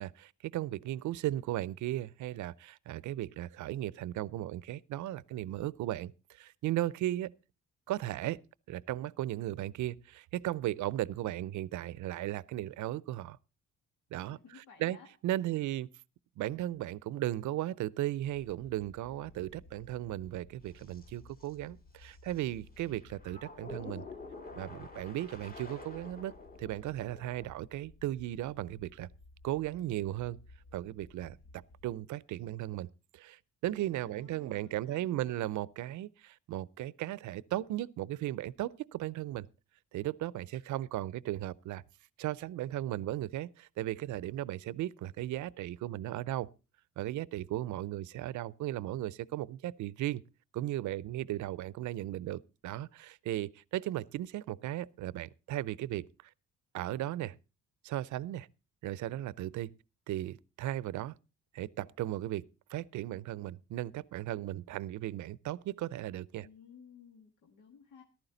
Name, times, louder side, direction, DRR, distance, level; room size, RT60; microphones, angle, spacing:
voice 1, 0.0-7.3 7.9-8.4 8.7-13.4 14.1-14.4 14.8-15.0 15.2-15.9 16.4-24.0 24.6-26.3 26.6-29.1 29.4-30.4 30.7-32.9 33.1-39.5 39.9-41.8 42.2-46.5 47.0-50.2 50.5-56.1 56.7-57.4 57.8-58.5 58.8-59.7 60.1-61.1 61.5-66.5, right 14 dB, 75° right, 0.6 m, -36 dB
voice 2, 14.3-15.1 15.5-15.7 34.0-35.5 66.4-68.0, left 6 dB, 85° left, 1.7 m, -56 dB
sound 1, 18.2-31.9, left 3 dB, 65° left, 1.3 m, -57 dB
sound 2, 20.7-21.1 21.4-21.5 22.0-22.4 22.8-27.5, left 3 dB, 30° left, 1.8 m, -48 dB
14.0 x 11.5 x 3.9 m
cardioid pair, 90°, 30 cm